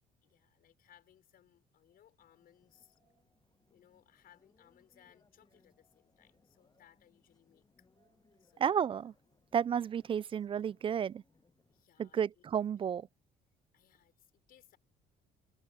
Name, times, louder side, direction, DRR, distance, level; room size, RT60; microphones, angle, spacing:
voice 1, 0.2-3.0 3.7-7.9 8.4-8.6 11.7-12.4 13.7-14.8, left 11 dB, 60° left, 6.0 m, -65 dB
sound 1, 2.2-11.8, left 4 dB, 25° left, 7.6 m, -72 dB
voice 2, 8.6-9.1 9.5-11.2 12.0-13.1, right 8 dB, 30° right, 0.4 m, -32 dB
cardioid pair, 110°, 17 cm